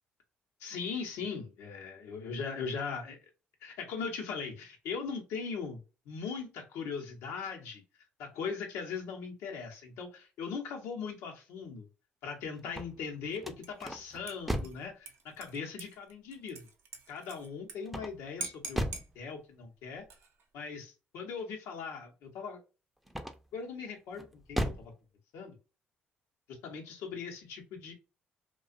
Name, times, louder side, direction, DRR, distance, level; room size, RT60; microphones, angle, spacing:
voice 1, 0.6-3.2 3.6-7.8 8.2-11.9 12.2-16.7 17.1-18.8 19.1-20.0 20.5-22.6 23.5-24.9 25.3-25.6 26.5-27.9, left 5 dB, 80° left, 2 dB, 0.9 m, -39 dB
sound 1, 12.6-14.9 17.9-19.2 23.1-23.6 24.1-24.9, equal, ahead, 0.5 m, -36 dB
Dishes pots and pans / Liquid, 13.6-13.9 14.3-17.8 18.0-18.1 18.4-19.1 19.9-20.4, right 4 dB, 65° right, 0.6 m, -45 dB
2.4 x 2.3 x 2.4 m, 0.31 s
supercardioid pair, 60°, 5 cm